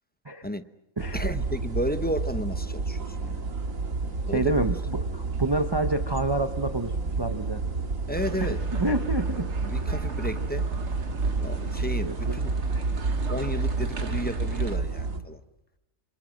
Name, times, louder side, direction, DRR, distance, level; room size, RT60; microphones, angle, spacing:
sound 1, 1.0-15.2, right 3 dB, 75° right, 2.4 m, -29 dB
voice 1, 1.1-3.4 4.2-4.7 8.1-8.6 9.6-10.7 11.4-12.5 13.3-15.4, equal, 10° left, 0.7 m, -33 dB
voice 2, 4.3-7.6 8.8-9.5 12.0-12.4, right 2 dB, 20° right, 0.8 m, -28 dB
sound 2, 8.1-14.8, right 4 dB, 55° right, 1.9 m, -40 dB
27.5 x 26.5 x 6.3 m
omnidirectional pair, 1.4 m